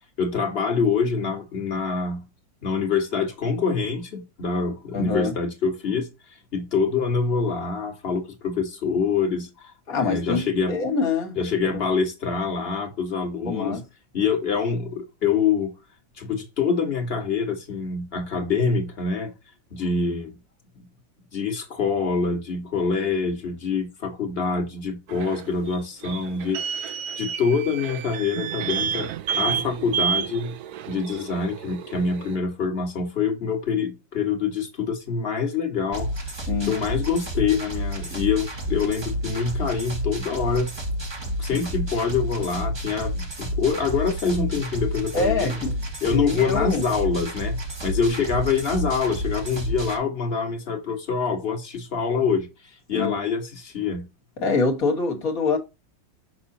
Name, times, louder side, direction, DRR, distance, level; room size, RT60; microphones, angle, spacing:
voice 1, 0.2-2.2 2.6-6.1 6.5-9.7 10.0-10.8 11.3-13.8 14.1-15.7 16.2-19.3 19.7-20.4 21.3-26.6 26.9-29.1 29.3-30.6 30.9-40.8 41.4-45.6 46.0-52.5 52.9-54.1, left 5 dB, 35° left, 1.5 m, -25 dB
voice 2, 4.9-5.3 9.9-11.4 11.6-11.8 13.5-13.8 36.5-36.7 45.1-45.8 46.1-46.8 52.9-53.2 54.4-55.6, left 4 dB, 50° left, 1.9 m, -24 dB
sound 1, 25.1-32.4, right 8 dB, 70° right, 0.9 m, -30 dB
sound 2, 35.9-50.0, equal, 20° right, 0.8 m, -30 dB
6.0 x 5.9 x 2.7 m
omnidirectional pair, 2.0 m